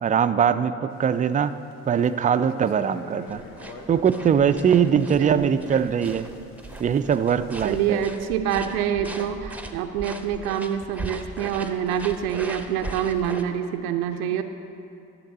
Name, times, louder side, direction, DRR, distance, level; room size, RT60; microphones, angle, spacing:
voice 1, 0.0-1.5 1.9-3.4 3.9-6.3 6.8-8.0, right 7 dB, 20° right, 11 dB, 0.3 m, -21 dB
sound 1, 0.9-8.1, left 3 dB, 85° left, 0.9 m, -46 dB
sound 2, 3.3-13.4, right 2 dB, 5° right, 0.7 m, -39 dB
voice 2, 5.2-5.6 7.6-14.4, right 9 dB, 80° right, 7 dB, 0.5 m, -26 dB
13.0 x 6.5 x 4.0 m, 2.6 s
figure-of-eight pair, 45°, 43 cm